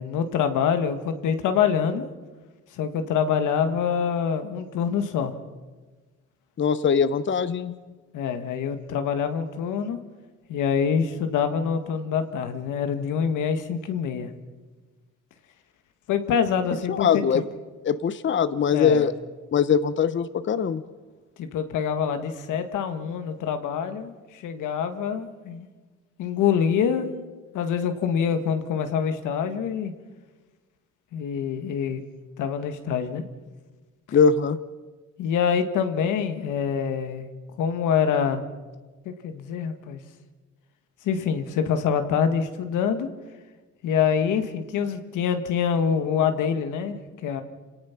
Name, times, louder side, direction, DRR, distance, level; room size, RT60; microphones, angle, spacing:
voice 1, 0.0-2.0 2.8-5.3 8.1-10.0 10.5-14.3 16.1-17.4 18.7-19.0 21.4-25.7 26.2-27.1 27.5-29.9 31.1-32.0 32.4-33.2 35.2-37.2 37.6-38.4 39.0-40.0 41.0-43.1 43.8-47.4, left 7 dB, 85° left, 8 dB, 1.7 m, -25 dB
voice 2, 6.6-7.8 16.9-17.4 17.8-19.1 19.5-20.8 34.1-34.6, left 6 dB, 40° left, 14 dB, 0.8 m, -21 dB
27.5 x 18.0 x 5.9 m, 1.3 s
cardioid pair, 90°, 30 cm